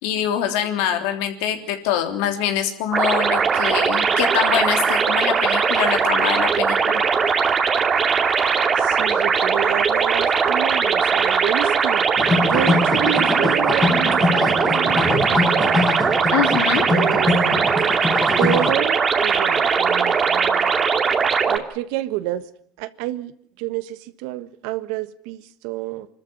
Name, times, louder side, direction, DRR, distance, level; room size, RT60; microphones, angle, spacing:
voice 1, 0.0-7.0 16.3-16.9, left 10 dB, 75° left, 3.3 m, -24 dB
sound 1, 2.9-21.6, right 5 dB, 35° right, 2.5 m, -20 dB
voice 2, 8.8-12.2 12.5-15.8 16.9-17.8 18.4-20.7 21.4-22.4 22.8-23.3 23.6-26.1, right 14 dB, 75° right, 1.4 m, -29 dB
sound 2, 12.2-18.7, left 3 dB, 20° left, 4.6 m, -23 dB
25.0 x 14.0 x 9.7 m
supercardioid pair, 95°, 0 cm